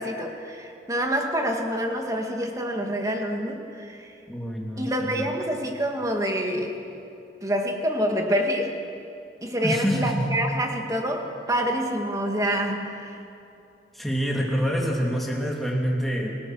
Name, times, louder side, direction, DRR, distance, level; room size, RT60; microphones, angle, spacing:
voice 1, 0.0-4.1 4.8-6.8 7.4-8.8 9.4-13.2, equal, 20° right, 3 dB, 1.9 m, -27 dB
voice 2, 4.3-5.3 9.6-10.3 13.9-16.4, equal, ahead, -3 dB, 3.1 m, -26 dB
28.0 x 18.0 x 6.3 m, 2.7 s
head